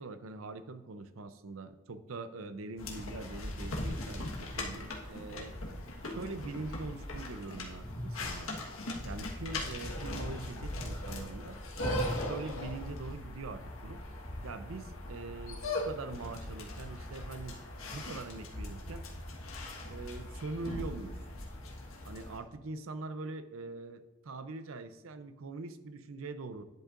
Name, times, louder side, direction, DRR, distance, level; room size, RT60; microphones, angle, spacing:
voice 1, 0.0-5.5 6.0-8.7 9.0-11.6 12.2-14.0 14.4-17.6 17.9-19.1 19.9-21.2 22.0-26.6, right 3 dB, 80° right, 11 dB, 0.6 m, -43 dB
sound 1, 2.8-22.4, left 1 dB, 90° left, 1.4 m, -39 dB
10.5 x 8.0 x 2.5 m, 1.1 s
head